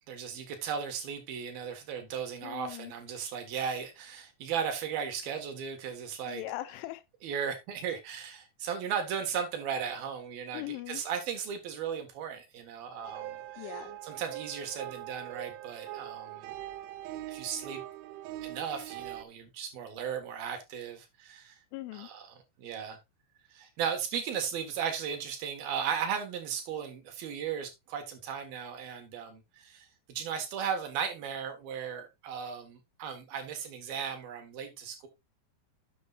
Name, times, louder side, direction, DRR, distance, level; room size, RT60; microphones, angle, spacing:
voice 1, 0.1-6.4 7.2-16.5 17.3-17.8 18.4-21.6 21.9-23.0 23.5-35.1, right 7 dB, 60° right, 2.9 m, -36 dB
voice 2, 2.4-2.9 6.3-7.0 10.5-11.0 13.6-14.0 21.7-22.1, left 16 dB, 85° left, 3.2 m, -40 dB
sound 1, 13.0-19.2, right 14 dB, 80° right, 3.1 m, -42 dB
11.5 x 8.2 x 2.4 m
omnidirectional pair, 5.5 m